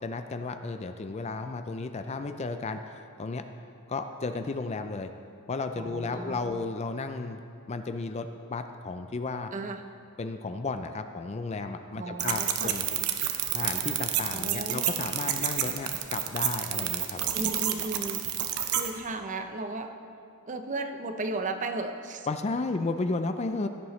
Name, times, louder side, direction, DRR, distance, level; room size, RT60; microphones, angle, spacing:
voice 1, 0.0-3.4 3.9-5.1 5.5-7.4 7.7-9.5 10.2-12.9 13.5-17.3 22.3-23.7, left 3 dB, 30° left, 8 dB, 0.4 m, -33 dB
voice 2, 5.8-6.6 9.5-9.8 12.0-12.8 14.3-15.1 17.3-18.3 18.7-19.9 20.5-22.3, right 2 dB, 35° right, 6 dB, 0.6 m, -35 dB
sound 1, 12.2-18.9, right 10 dB, 80° right, 0.8 m, -29 dB
15.5 x 10.0 x 3.2 m, 2.5 s
head